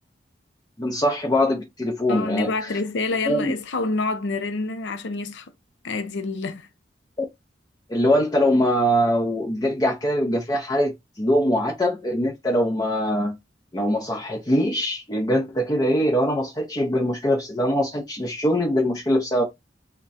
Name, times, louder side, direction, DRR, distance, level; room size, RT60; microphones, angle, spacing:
voice 1, 0.8-2.8 3.3-3.5 7.9-13.4 13.7-19.4, equal, 20° left, 0.6 m, -22 dB
voice 2, 2.1-5.5 5.8-6.7, left 3 dB, 75° left, 0.5 m, -27 dB
3.5 x 2.2 x 4.0 m
head